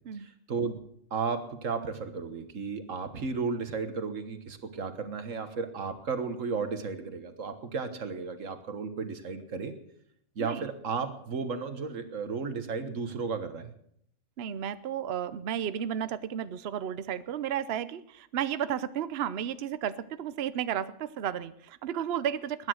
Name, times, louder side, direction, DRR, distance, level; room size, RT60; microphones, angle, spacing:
voice 1, 0.1-0.8 1.1-9.7 10.4-13.7, right 5 dB, 85° right, 9 dB, 1.8 m, -34 dB
voice 2, 14.4-22.7, right 9 dB, 60° right, 14 dB, 0.9 m, -33 dB
20.5 x 9.9 x 6.3 m, 0.68 s
omnidirectional pair, 1.3 m